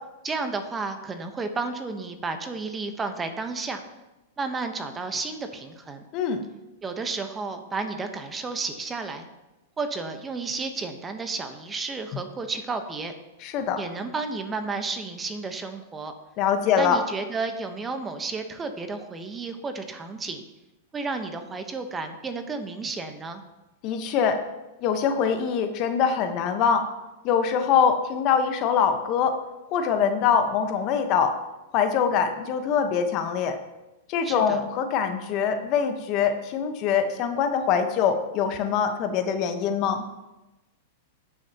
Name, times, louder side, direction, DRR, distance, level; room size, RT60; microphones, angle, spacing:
voice 1, 0.2-3.8 4.4-6.1 6.8-9.3 9.8-13.1 13.8-16.1 16.8-20.4 20.9-23.4 34.2-34.6, right 4 dB, 20° right, 7 dB, 1.0 m, -32 dB
voice 2, 6.1-6.4 13.4-13.8 16.4-17.0 23.8-24.4 24.8-26.9 27.2-29.4 29.7-31.3 31.7-33.6 34.1-40.0, left 7 dB, 45° left, 6 dB, 1.1 m, -23 dB
18.5 x 6.4 x 3.0 m, 1.0 s
hypercardioid pair, 115°, 0 cm